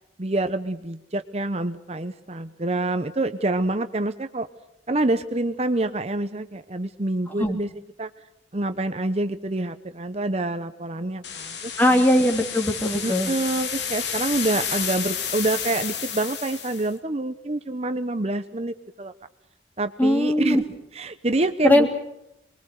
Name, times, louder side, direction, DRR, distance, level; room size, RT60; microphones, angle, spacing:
voice 1, 0.2-4.5 4.9-7.7 8.0-8.1 8.5-12.0 13.0-19.1 19.8-20.7 20.9-21.9, right 2 dB, 35° right, 9 dB, 0.9 m, -27 dB
sound 1, 11.2-16.9, left 7 dB, 70° left, 2.7 m, -31 dB
voice 2, 11.8-13.3 20.0-20.6 21.6-21.9, left 1 dB, 10° left, 4 dB, 2.8 m, -20 dB
27.5 x 22.0 x 6.6 m, 0.85 s
head